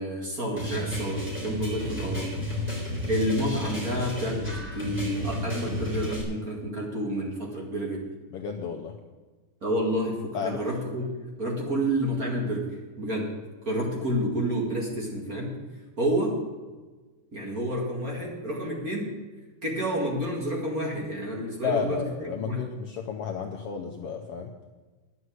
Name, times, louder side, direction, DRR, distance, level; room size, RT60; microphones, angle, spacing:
voice 1, 0.0-2.3 2.7-8.0 9.6-11.1 11.4-12.7 13.0-13.3 13.6-15.5 16.0-16.4 17.3-19.1 19.6-22.6, right 1 dB, 30° right, -2 dB, 2.2 m, -29 dB
sound 1, 0.6-6.2, left 1 dB, 5° right, 3.2 m, -32 dB
voice 2, 8.3-8.9 10.3-10.6 21.6-24.5, left 6 dB, 65° left, 3 dB, 1.6 m, -32 dB
10.0 x 7.9 x 9.6 m, 1.3 s
omnidirectional pair, 3.4 m